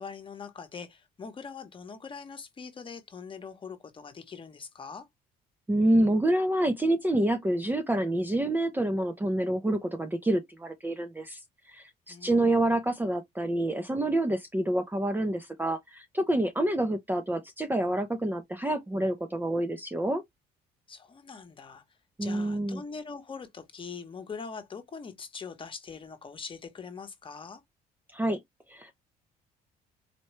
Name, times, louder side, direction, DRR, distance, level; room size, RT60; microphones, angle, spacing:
voice 1, 0.0-5.1 12.1-12.8 20.9-27.6, left 5 dB, 30° left, 1.0 m, -42 dB
voice 2, 5.7-11.4 11.7-20.2 22.2-22.8 28.1-28.4 28.7-28.9, right 1 dB, 10° right, 0.6 m, -27 dB
4.3 x 2.2 x 3.0 m
cardioid pair, 110°, 17 cm